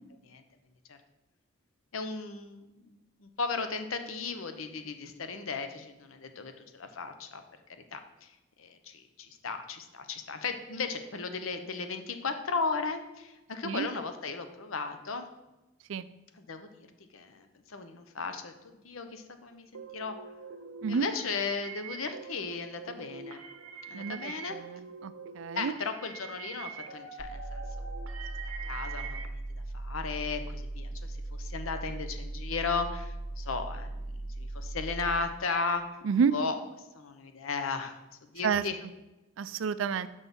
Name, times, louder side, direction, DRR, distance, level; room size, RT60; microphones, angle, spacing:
voice 1, 1.9-7.4 7.9-8.3 8.6-15.3 16.3-16.9 17.1-20.1 20.9-23.4 23.9-24.6 25.6-27.9 28.6-29.4 29.7-36.0 36.3-36.6 36.9-38.0 38.3-38.8, left 4 dB, 75° left, 8 dB, 0.8 m, -36 dB
sound 1, 19.7-29.3, right 5 dB, 85° right, 0.8 m, -44 dB
voice 2, 23.9-25.7 36.0-36.3 38.4-38.6 39.4-40.1, right 6 dB, 70° right, 15 dB, 0.4 m, -30 dB
sound 2, 27.2-35.2, right 2 dB, 15° right, 0.5 m, -38 dB
6.2 x 5.3 x 5.4 m, 1.0 s
head